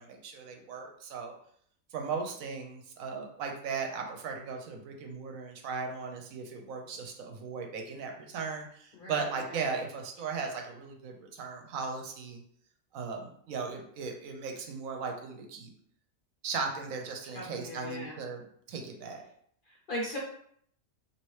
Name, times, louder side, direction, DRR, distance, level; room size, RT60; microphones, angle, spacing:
voice 1, 0.0-1.3 1.9-12.4 12.9-15.7 16.4-19.2, right 5 dB, 75° right, 2 dB, 1.0 m, -37 dB
voice 2, 8.9-9.6 17.3-18.2 19.7-20.2, left 1 dB, 55° left, -3 dB, 0.6 m, -39 dB
3.1 x 2.8 x 3.1 m, 0.65 s
omnidirectional pair, 1.5 m